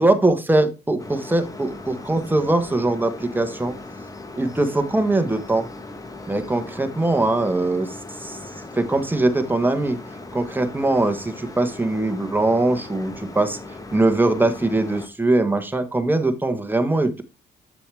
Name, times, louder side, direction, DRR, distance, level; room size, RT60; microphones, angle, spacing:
voice 1, 0.0-3.7 4.3-5.7 6.3-8.4 8.7-10.0 10.3-13.6 13.9-17.2, right 2 dB, 10° right, 7 dB, 1.3 m, -21 dB
sound 1, 1.0-15.1, left 2 dB, 15° left, 1.1 m, -38 dB
7.5 x 6.9 x 3.3 m, 0.27 s
cardioid pair, 90°, 20 cm